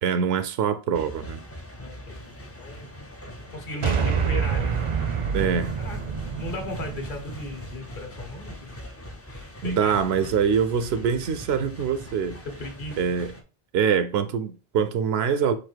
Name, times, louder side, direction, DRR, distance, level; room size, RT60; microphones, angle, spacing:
voice 1, 0.0-1.4 5.3-5.8 9.6-12.4 13.0-13.3 13.7-15.5, right 7 dB, 90° right, 0.8 m, -24 dB
sound 1, 0.9-13.4, equal, 25° left, 0.3 m, -42 dB
voice 2, 1.8-3.1 3.5-4.7 5.8-8.7 9.3-10.3 12.4-13.0, left 2 dB, 55° left, 1.2 m, -37 dB
sound 2, 3.8-8.3, right 6 dB, 45° right, 0.5 m, -27 dB
4.1 x 2.7 x 4.4 m
omnidirectional pair, 1.0 m